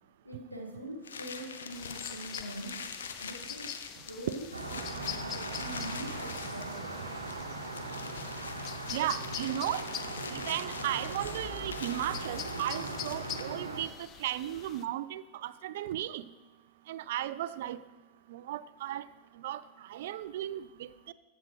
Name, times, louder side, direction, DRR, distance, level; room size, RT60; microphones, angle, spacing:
voice 1, 0.2-2.9 3.2-6.9 7.2-7.9, right 1 dB, 85° left, 0 dB, 1.9 m, -44 dB
sound 1, 1.0-13.6, left 5 dB, 70° left, 0.8 m, -44 dB
sound 2, 1.7-14.9, left 10 dB, 35° left, 0.5 m, -45 dB
sound 3, 4.5-13.8, right 3 dB, 75° right, 0.9 m, -39 dB
voice 2, 8.9-9.8 10.3-13.9 14.2-16.2 16.9-17.8 18.3-19.0 19.4-19.6 19.9-21.1, right 13 dB, 55° right, 16 dB, 0.4 m, -35 dB
14.5 x 7.4 x 3.3 m, 1.3 s
figure-of-eight pair, 90°, 0 cm